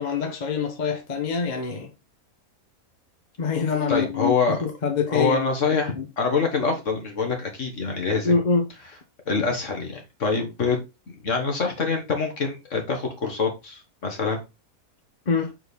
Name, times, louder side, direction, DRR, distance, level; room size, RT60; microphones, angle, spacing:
voice 1, 0.0-1.9 3.4-5.5 6.0-6.1 8.2-8.7 15.3-15.5, left 5 dB, 35° left, 1.0 m, -25 dB
voice 2, 3.9-4.6 5.1-8.3 9.3-10.8 11.2-14.4, left 4 dB, 60° left, 1.9 m, -25 dB
6.3 x 4.7 x 3.5 m
omnidirectional pair, 1.5 m